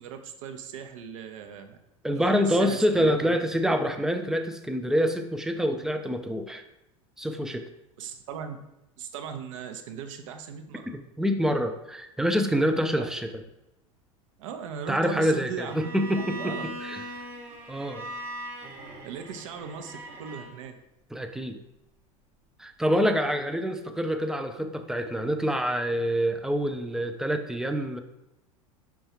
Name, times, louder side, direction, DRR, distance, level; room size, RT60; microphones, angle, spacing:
voice 1, 0.0-1.8 2.1-3.4 8.0-8.6 9.0-10.9 13.0-13.1 14.4-15.9 16.3-16.6 19.0-20.8, right 7 dB, 65° right, 7 dB, 0.5 m, -38 dB
voice 2, 2.0-6.6 7.2-7.6 10.9-13.4 14.9-17.0 17.7-18.0 21.1-21.6 22.6-28.0, equal, 5° right, 6 dB, 0.3 m, -26 dB
Bowed string instrument, 15.6-20.5, right 1 dB, 45° right, 0.9 m, -40 dB
5.4 x 2.3 x 2.8 m, 0.90 s
figure-of-eight pair, 80°, 18 cm